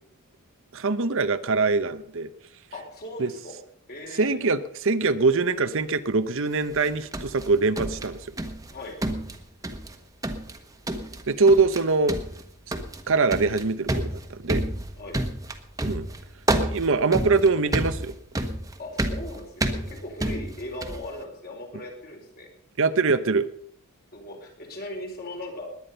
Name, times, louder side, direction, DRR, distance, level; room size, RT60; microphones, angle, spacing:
voice 1, 0.7-2.3 3.2-3.3 4.1-8.2 11.3-12.2 13.1-14.6 15.8-16.1 16.6-18.1 22.8-23.5, right 4 dB, 60° right, 12 dB, 0.8 m, -23 dB
voice 2, 2.7-3.5 3.9-4.4 8.7-9.0 15.0-15.2 18.8-22.5 24.1-25.6, left 1 dB, 45° left, 2 dB, 4.4 m, -38 dB
sound 1, 6.7-8.7 9.0-10.0 10.2-10.6 10.9-11.2 11.5-11.8 12.1-21.1, right 1 dB, 15° right, 1.3 m, -29 dB
20.5 x 9.7 x 5.5 m, 0.65 s
head